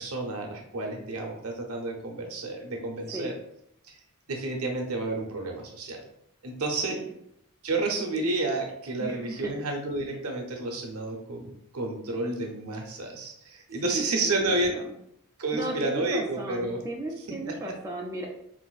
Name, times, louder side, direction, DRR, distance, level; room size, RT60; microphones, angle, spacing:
voice 1, 0.0-3.3 4.3-6.0 6.4-7.0 7.6-14.8 15.4-16.8, right 2 dB, 70° right, 1 dB, 0.7 m, -30 dB
voice 2, 9.0-9.5 13.8-14.9 15.5-18.3, right 1 dB, 15° right, -1 dB, 0.3 m, -35 dB
4.0 x 2.5 x 2.3 m, 0.75 s
head